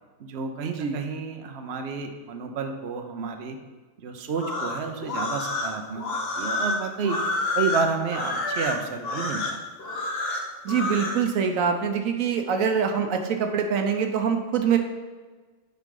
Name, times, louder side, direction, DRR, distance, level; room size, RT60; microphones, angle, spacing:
voice 1, 0.2-3.6 4.0-7.2 7.5-9.6, right 5 dB, 60° right, 5 dB, 0.9 m, -30 dB
sound 1, 4.3-11.2, left 2 dB, 50° left, 1.1 m, -29 dB
voice 2, 10.6-14.8, right 7 dB, 85° right, 5 dB, 1.2 m, -24 dB
9.2 x 4.9 x 3.8 m, 1.4 s
omnidirectional pair, 1.4 m